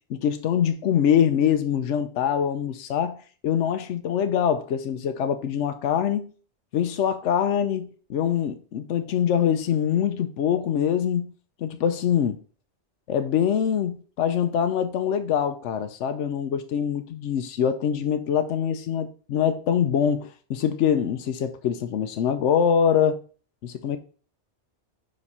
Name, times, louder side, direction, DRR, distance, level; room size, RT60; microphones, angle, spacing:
voice 1, 0.1-6.3 6.7-11.3 11.6-12.4 13.1-23.2 23.6-24.0, left 8 dB, 85° left, 1.0 m, -24 dB
5.2 x 5.1 x 5.4 m
omnidirectional pair, 1.2 m